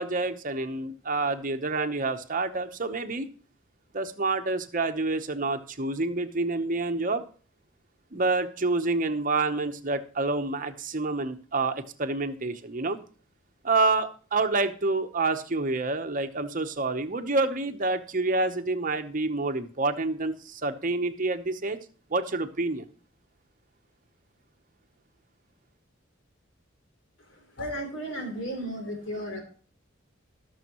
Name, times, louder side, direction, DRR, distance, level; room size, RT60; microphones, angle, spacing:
voice 1, 0.0-3.3 3.9-7.2 8.1-13.0 13.6-21.8 22.1-22.9, right 3 dB, 40° right, 8 dB, 0.9 m, -28 dB
voice 2, 27.3-29.4, equal, 65° left, 3 dB, 3.3 m, -34 dB
19.0 x 6.4 x 3.0 m, 0.41 s
head